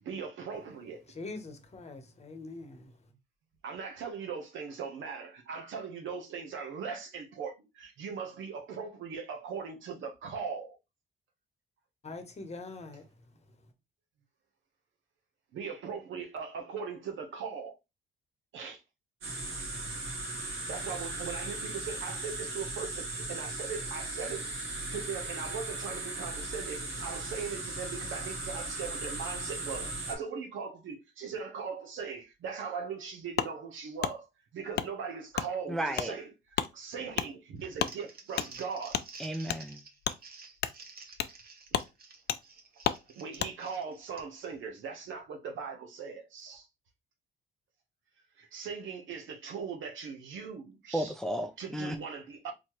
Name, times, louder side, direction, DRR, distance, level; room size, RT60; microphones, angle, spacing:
voice 1, 0.0-1.0 3.6-10.8 15.5-17.7 18.5-18.8 20.7-24.5 24.9-34.3 34.5-39.0 43.1-46.7 48.4-51.1 51.6-52.5, right 6 dB, 75° right, 1.1 m, -39 dB
voice 2, 1.1-2.9 12.0-13.0, left 3 dB, 35° left, 1.0 m, -43 dB
sound 1, 19.2-30.1, right 2 dB, 90° right, 1.7 m, -37 dB
Wood, 33.4-33.5 34.0-34.1 34.7-34.9 35.3-35.5 35.9-36.1 36.5-36.7 37.1-37.3 37.8-37.9 38.4-38.5 38.9-39.1 39.5-39.6 40.0-40.2 40.6-40.8 41.2-41.4 41.7-41.9 42.3-42.4 42.8-43.0 43.4-43.5, left 9 dB, 55° left, 0.5 m, -31 dB
voice 3, 35.7-36.1 39.2-39.8 50.9-52.0, right 1 dB, ahead, 0.5 m, -33 dB
Crumpling crinkling, 37.6-44.5, right 4 dB, 50° right, 1.1 m, -51 dB
4.2 x 2.8 x 3.1 m
cardioid pair, 90°, 20 cm